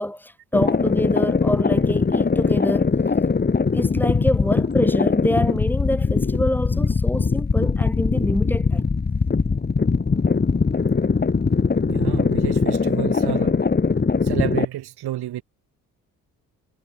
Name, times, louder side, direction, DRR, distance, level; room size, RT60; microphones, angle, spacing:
voice 1, 0.0-2.9 3.7-8.9, equal, 5° left, 6.3 m, -26 dB
sound 1, 0.5-14.7, left 4 dB, 20° left, 1.7 m, -21 dB
voice 2, 11.9-13.6 14.2-15.4, right 13 dB, 60° right, 7.2 m, -30 dB
figure-of-eight pair, 40°, 44 cm